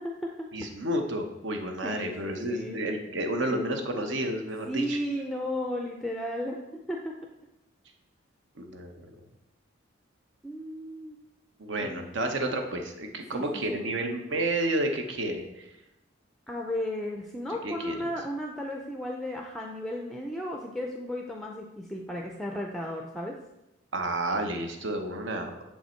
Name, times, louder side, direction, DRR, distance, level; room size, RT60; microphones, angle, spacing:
voice 1, 0.0-0.5 1.8-2.8 4.7-6.6 6.9-7.1 10.4-11.2 11.8-12.1 13.3-13.8 16.5-23.3, equal, ahead, 0 dB, 0.4 m, -34 dB
voice 2, 0.5-5.0 8.6-9.1 11.6-15.7 17.6-18.1 23.9-25.7, right 1 dB, 70° right, 4 dB, 0.9 m, -31 dB
6.7 x 5.5 x 4.4 m, 0.93 s
head